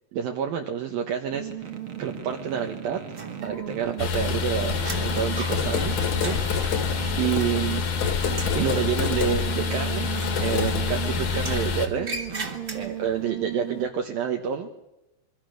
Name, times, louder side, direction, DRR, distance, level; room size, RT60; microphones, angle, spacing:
voice 1, 0.1-3.0 3.4-6.4 7.2-7.8 8.5-10.1 10.4-12.3 12.7-14.7, right 8 dB, 65° right, 3 dB, 2.8 m, -28 dB
sound 1, 1.3-13.9, right 10 dB, 50° right, 1.6 m, -37 dB
sound 2, 3.1-3.9 4.2-7.9 8.2-8.7 10.1-11.0 11.3-13.2, right 2 dB, 20° right, 2.3 m, -39 dB
sound 3, 4.0-11.9, left 6 dB, 50° left, 3.2 m, -26 dB
27.5 x 23.0 x 6.5 m, 0.91 s
omnidirectional pair, 4.8 m